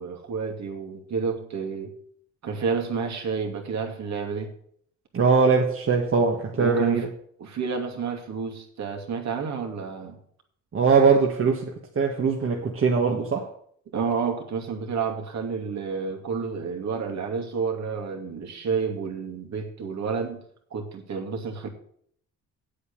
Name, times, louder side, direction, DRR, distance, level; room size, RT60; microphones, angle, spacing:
voice 1, 0.0-1.9 2.4-4.5 6.5-7.0 7.4-10.2 13.9-20.4 20.7-21.7, right 5 dB, 65° right, 2.5 m, -30 dB
voice 2, 5.1-7.1 10.7-11.7 12.0-13.5, right 5 dB, 45° right, 1.7 m, -21 dB
8.4 x 8.3 x 7.1 m
cardioid pair, 90°, 30 cm